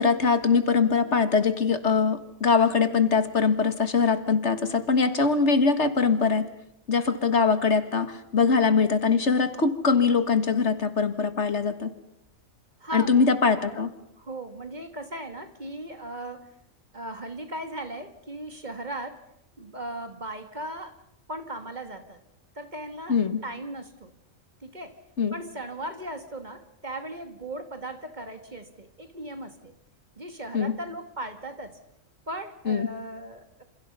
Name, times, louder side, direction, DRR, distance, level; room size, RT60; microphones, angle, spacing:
voice 1, 0.0-6.4 6.9-11.9 12.9-13.9 23.1-23.4 25.2-25.3 30.5-30.7 32.7-32.9, left 5 dB, 60° left, 10 dB, 1.9 m, -22 dB
voice 2, 12.8-13.3 14.2-16.5 16.9-19.2 19.6-21.0 21.3-22.2 22.6-24.1 24.6-25.0 25.3-29.7 30.2-31.8 32.3-33.6, right 1 dB, 35° right, 7 dB, 2.3 m, -37 dB
28.0 x 28.0 x 5.6 m, 0.79 s
omnidirectional pair, 1.3 m